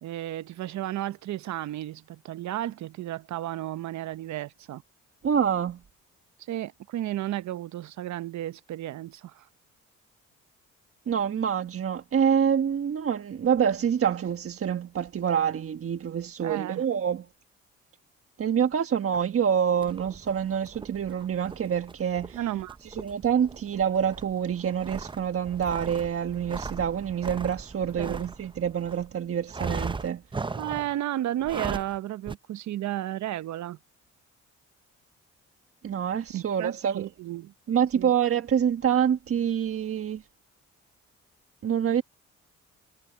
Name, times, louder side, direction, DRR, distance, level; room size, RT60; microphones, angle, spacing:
voice 1, 0.0-4.8 6.5-9.5 16.4-16.8 22.3-22.8 28.0-28.2 30.6-33.8 36.3-37.5 37.9-38.1, right 13 dB, 70° right, 0.8 m, -33 dB
voice 2, 5.2-5.8 11.1-17.3 18.4-22.4 22.8-30.2 35.8-37.1 37.7-40.2 41.6-42.0, right 8 dB, 50° right, 1.4 m, -26 dB
sound 1, 19.8-29.0 29.5-31.0 31.4-32.0 32.3-32.4, right 4 dB, 15° right, 0.6 m, -38 dB
supercardioid pair, 70°, 30 cm